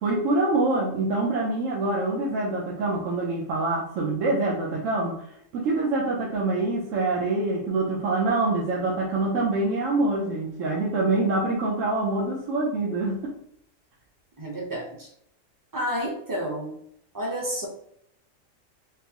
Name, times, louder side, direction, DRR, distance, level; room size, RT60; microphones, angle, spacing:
voice 1, 0.0-5.2 5.5-13.3, right 2 dB, 75° right, -3 dB, 1.0 m, -25 dB
voice 2, 14.4-15.1 15.7-16.7 17.1-17.7, equal, 20° right, -2 dB, 0.6 m, -30 dB
3.7 x 2.6 x 2.8 m, 0.71 s
omnidirectional pair, 1.4 m